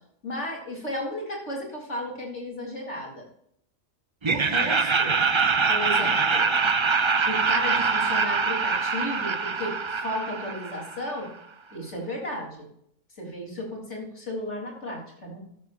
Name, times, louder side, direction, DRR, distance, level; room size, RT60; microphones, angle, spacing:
voice 1, 0.2-3.2 4.3-5.2 5.7-6.5 7.2-11.3 11.7-12.7 13.2-15.4, left 1 dB, 55° left, -1 dB, 4.1 m, -34 dB
Laughter, 4.2-11.2, right 5 dB, 40° right, 0.4 m, -24 dB
13.0 x 12.5 x 2.6 m, 0.71 s
omnidirectional pair, 1.4 m